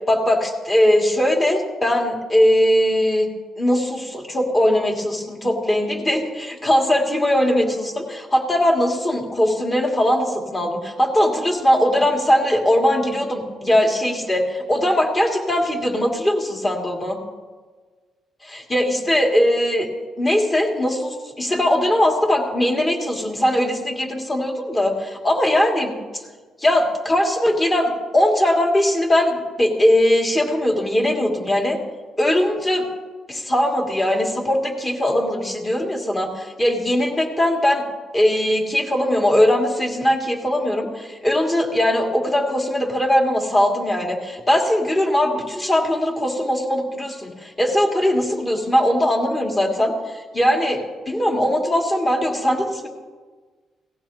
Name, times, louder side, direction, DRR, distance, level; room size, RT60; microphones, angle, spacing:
voice 1, 0.1-3.3 3.6-17.2 18.4-19.9 20.2-25.9 26.6-31.8 32.2-32.9 33.3-37.8 38.1-50.8 51.1-52.9, left 1 dB, 25° left, 0 dB, 2.4 m, -20 dB
18.0 x 15.0 x 2.9 m, 1.4 s
cardioid pair, 90°, 0 cm